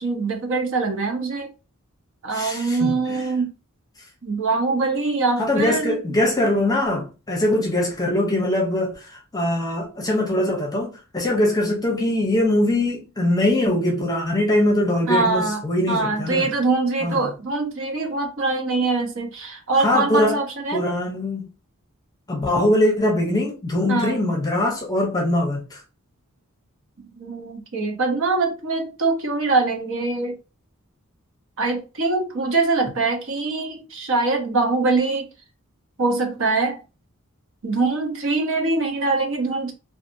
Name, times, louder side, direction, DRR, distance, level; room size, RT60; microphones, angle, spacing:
voice 1, 0.0-1.5 2.2-3.5 4.2-6.0 15.1-15.6 15.9-20.8 23.9-24.2 27.2-30.4 31.6-35.3 36.0-36.8 37.6-39.7, right 3 dB, 65° right, 0.8 m, -23 dB
voice 2, 2.3-3.2 5.4-16.4 17.0-17.2 19.8-20.4 20.7-21.5 22.3-25.8, left 1 dB, 20° left, 0.7 m, -22 dB
2.6 x 2.4 x 2.6 m
head